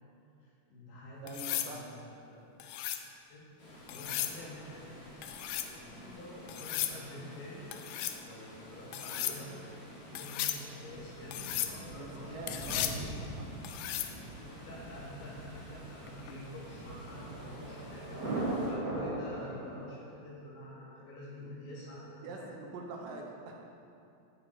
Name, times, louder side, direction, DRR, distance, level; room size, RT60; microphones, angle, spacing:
voice 1, 0.4-1.4 1.6-1.8 2.3-2.5 3.3-3.5 3.9-4.9 5.6-7.6 8.2-13.2 14.4-18.2 18.6-22.6, left 1 dB, 70° left, -6 dB, 3.6 m, -48 dB
voice 2, 1.2-2.0 11.9-13.5 22.2-23.6, right 3 dB, 75° right, 1 dB, 2.4 m, -44 dB
sound 1, 1.3-1.7 2.6-3.1 3.9-4.4 5.2-5.7 6.5-7.0 7.7-8.2 8.9-9.4 10.2-10.6 11.3-11.7 12.5-13.0 13.6-14.1 16.1-16.3, left 12 dB, 90° left, 2.3 m, -35 dB
Water, 3.6-18.7, equal, 35° left, 2.6 m, -51 dB
Thunder, 10.9-19.9, right 2 dB, 45° right, 1.2 m, -40 dB
9.4 x 7.7 x 4.3 m, 2.6 s
omnidirectional pair, 4.1 m